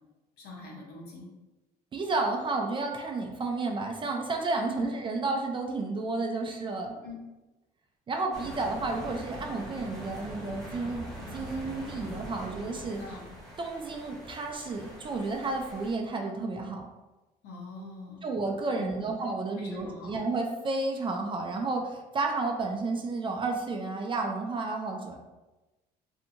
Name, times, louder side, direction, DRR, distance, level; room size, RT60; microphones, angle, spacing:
voice 1, 0.4-1.3 4.7-4.9 7.0-7.2 13.0-13.3 17.4-18.2 18.8-19.1 19.6-20.1, left 3 dB, 75° left, -2 dB, 0.8 m, -43 dB
voice 2, 1.9-6.9 8.1-13.0 13.6-16.9 18.2-25.2, right 3 dB, 30° right, 2 dB, 0.4 m, -31 dB
sound 1, 8.3-15.9, equal, ahead, 1.5 m, -43 dB
2.7 x 2.6 x 2.5 m, 1.1 s
cardioid pair, 110°, 17 cm